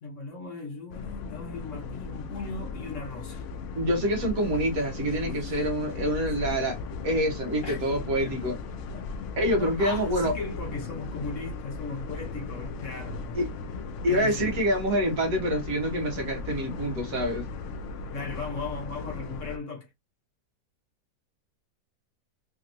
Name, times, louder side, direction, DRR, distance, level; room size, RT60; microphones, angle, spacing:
voice 1, 0.0-3.5 5.2-5.6 7.6-7.8 8.2-8.4 8.9-9.0 9.4-13.4 14.1-14.6 18.1-19.9, left 3 dB, 55° left, 1.0 m, -37 dB
sound 1, 0.9-19.6, left 4 dB, 90° left, 0.6 m, -37 dB
voice 2, 3.8-6.8 7.0-8.6 9.4-10.3 13.3-13.5 14.0-17.5, equal, 60° right, 1.3 m, -26 dB
3.4 x 2.8 x 2.5 m
omnidirectional pair, 1.8 m